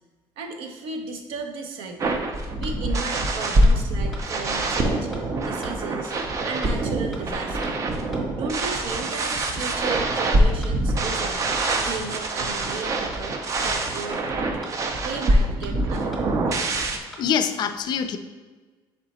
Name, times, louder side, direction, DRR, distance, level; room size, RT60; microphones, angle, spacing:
voice 1, 0.4-2.2 2.6-6.1 6.4-7.9 8.3-11.4 11.7-14.2 15.0-16.1, right 4 dB, 85° right, 4 dB, 0.6 m, -35 dB
sound 1, 2.0-17.0, right 1 dB, 35° right, 0.4 m, -24 dB
sound 2, 2.1-2.2 2.6-2.7 3.1-3.2 3.6-3.7 4.1-4.2 4.6-4.7 5.1-5.2 5.6-5.7 6.1-6.2 6.6-6.7 7.1-7.2 7.6-7.7 8.1-8.2 8.6-8.7 9.1-9.2 9.6-9.7 10.1-10.2 10.6-10.7 11.1-11.2 11.6-11.7 12.1-12.2 12.6-12.7 13.1-13.2 13.6-13.7 14.1-14.2 14.6-14.7 15.1-15.2 15.6-15.7 16.1-16.2 16.6-16.7 17.1-17.2, equal, 5° left, 0.8 m, -42 dB
voice 2, 17.2-18.2, left 7 dB, 50° left, 9 dB, 0.3 m, -24 dB
3.9 x 3.3 x 4.1 m, 1.3 s
cardioid pair, 135°, 9 cm